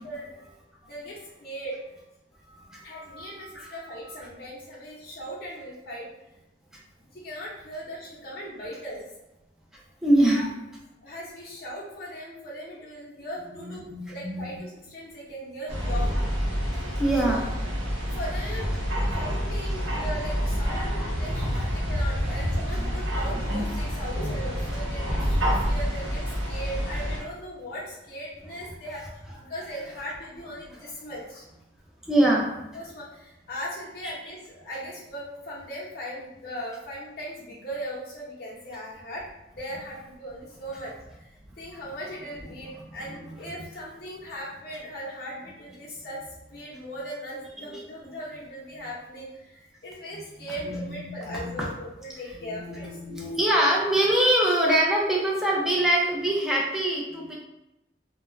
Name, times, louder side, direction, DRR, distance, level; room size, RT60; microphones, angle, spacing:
voice 1, 0.8-1.8 2.8-6.1 7.1-9.0 10.3-10.4 11.0-16.1 17.2-17.4 18.0-18.7 19.1-26.2 26.5-29.0 29.5-31.4 32.7-39.2 39.5-41.3 41.6-46.2 46.5-52.9, equal, 55° left, -6 dB, 0.7 m, -38 dB
voice 2, 2.5-3.8 4.1-4.2 10.0-10.5 13.4-14.5 17.0-17.4 21.5-21.6 22.7-22.9 32.0-32.5 41.5-41.6 47.6-47.8 50.6-51.7 52.4-57.4, right 1 dB, 5° right, -4 dB, 0.4 m, -25 dB
sound 1, 15.7-27.2, equal, 90° right, 0.7 m, -28 dB
2.2 x 2.1 x 3.0 m, 0.94 s
head